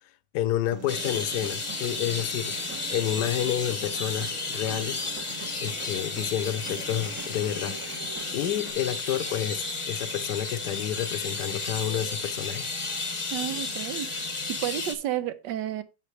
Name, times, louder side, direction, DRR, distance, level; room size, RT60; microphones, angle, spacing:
voice 1, 0.3-5.0 5.6-8.1 8.3-12.7, left 11 dB, 75° left, 1.2 m, -30 dB
Human voice, 0.7-8.7, right 7 dB, 55° right, 1.2 m, -44 dB
sound 1, 0.9-15.0, left 3 dB, 25° left, 0.7 m, -33 dB
voice 2, 13.3-14.1 14.5-15.8, right 12 dB, 80° right, 1.4 m, -31 dB
8.9 x 7.5 x 3.1 m
omnidirectional pair, 1.9 m